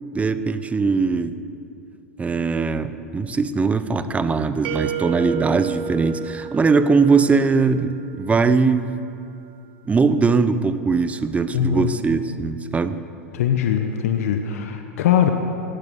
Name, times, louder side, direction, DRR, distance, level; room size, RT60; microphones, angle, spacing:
voice 1, 0.1-1.3 2.2-8.9 9.9-13.0, right 4 dB, 15° right, 12 dB, 0.9 m, -20 dB
sound 1, 4.6-7.5, right 8 dB, 60° right, 1.8 m, -30 dB
voice 2, 11.5-11.9 13.3-15.3, left 9 dB, 70° left, 6 dB, 1.2 m, -21 dB
16.5 x 12.0 x 6.5 m, 2.6 s
hypercardioid pair, 95°, 8 cm